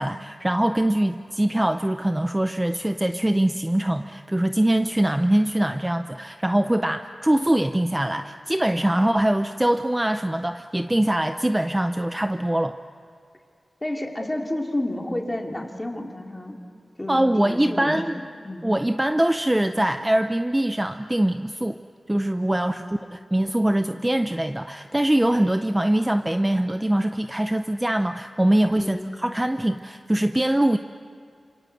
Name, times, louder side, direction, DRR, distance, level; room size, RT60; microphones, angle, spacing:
voice 1, 0.0-12.8 17.1-18.1 18.6-21.8 22.1-30.8, right 1 dB, 15° right, 8 dB, 0.6 m, -23 dB
voice 2, 13.8-16.6 17.0-18.0 18.4-18.7 22.5-22.9 28.8-29.1, left 1 dB, 15° left, 2 dB, 2.7 m, -31 dB
27.5 x 27.0 x 7.9 m, 2.3 s
wide cardioid pair, 120°, 0 cm